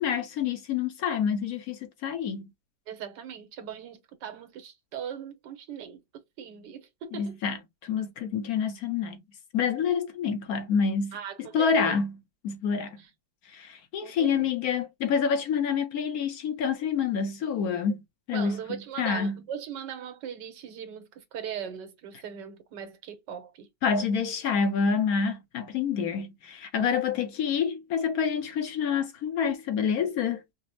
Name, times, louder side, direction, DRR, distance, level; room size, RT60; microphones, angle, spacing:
voice 1, 0.0-2.4 7.1-9.2 9.5-12.1 12.4-13.0 13.5-18.0 18.3-19.4 23.8-30.4, left 6 dB, 65° left, 1.1 m, -27 dB
voice 2, 2.9-7.4 11.1-12.0 13.0-13.1 14.0-14.5 18.3-23.7, right 8 dB, 90° right, 1.5 m, -39 dB
5.0 x 2.0 x 2.7 m
omnidirectional pair, 1.8 m